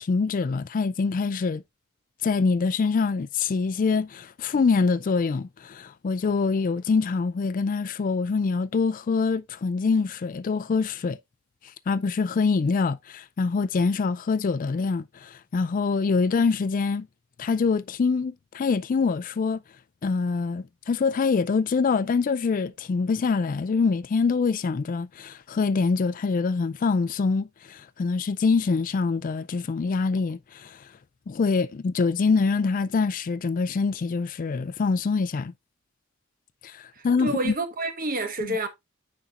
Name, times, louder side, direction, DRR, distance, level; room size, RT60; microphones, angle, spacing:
voice 1, 0.0-1.6 2.2-11.2 11.9-17.1 17.4-19.6 20.0-30.9 31.3-35.5 36.6-37.5 38.5-38.6, left 4 dB, 40° left, 0.3 m, -25 dB
voice 2, 36.9-38.7, right 2 dB, 40° right, 1.2 m, -29 dB
9.6 x 4.2 x 2.4 m
head